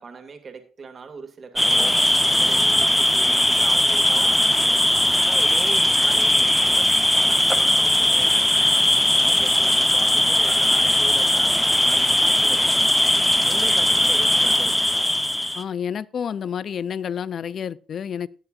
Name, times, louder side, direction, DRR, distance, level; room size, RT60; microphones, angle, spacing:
voice 1, 0.0-2.0 2.4-6.9 7.1-8.6 9.1-12.9 13.5-15.1, right 5 dB, 45° right, 5 dB, 2.0 m, -39 dB
sound 1, 1.6-15.6, left 1 dB, 5° left, 0.8 m, -19 dB
voice 2, 15.6-18.3, left 8 dB, 55° left, 20 dB, 0.4 m, -29 dB
17.5 x 7.0 x 2.5 m, 0.40 s
cardioid pair, 90°, 0 cm